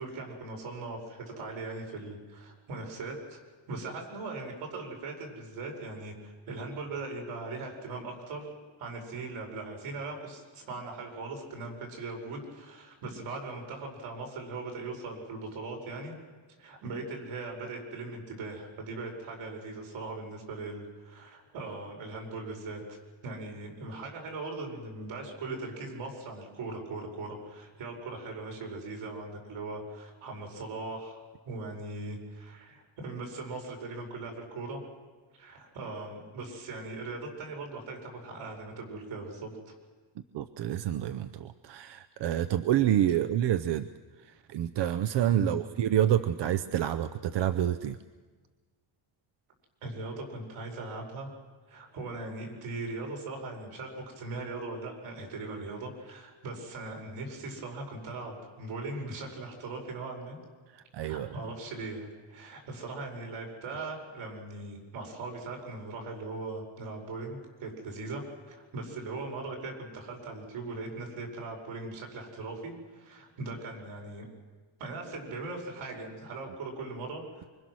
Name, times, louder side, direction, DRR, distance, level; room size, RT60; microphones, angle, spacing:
voice 1, 0.0-3.4 3.7-8.5 8.8-16.2 16.6-22.8 23.2-34.8 35.4-39.7 45.3-45.6 49.8-51.3 51.7-60.4 61.1-74.2 74.8-77.5, right 3 dB, 80° right, 1 dB, 5.7 m, -39 dB
voice 2, 40.3-43.9 44.2-48.0 60.7-61.3, right 11 dB, 60° right, 11 dB, 0.7 m, -28 dB
25.0 x 24.0 x 6.3 m, 1.4 s
cardioid pair, 175°, 48 cm